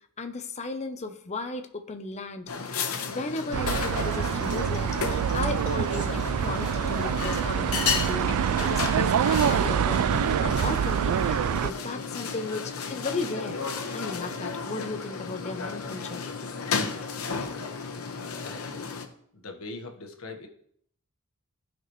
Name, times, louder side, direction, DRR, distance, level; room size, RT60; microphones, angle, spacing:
voice 1, 0.2-13.6 13.9-16.2, left 3 dB, 30° left, 7 dB, 0.7 m, -35 dB
sound 1, 2.5-19.1, left 5 dB, 85° left, 1.0 m, -33 dB
sound 2, 3.5-11.7, right 8 dB, 90° right, 0.3 m, -26 dB
voice 2, 17.2-17.9 18.4-19.0 19.3-20.5, left 2 dB, 70° left, 4 dB, 1.4 m, -42 dB
15.0 x 6.0 x 3.1 m, 0.66 s
head